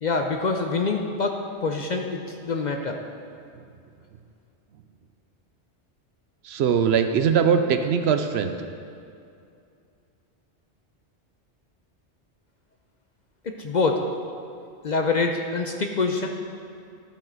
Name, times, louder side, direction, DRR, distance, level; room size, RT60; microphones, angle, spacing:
voice 1, 0.0-3.0 13.6-14.0 14.8-16.3, left 4 dB, 50° left, 3 dB, 0.6 m, -25 dB
voice 2, 6.4-8.5, right 7 dB, 70° right, 8 dB, 0.8 m, -21 dB
12.5 x 7.5 x 3.9 m, 2.5 s
omnidirectional pair, 1.2 m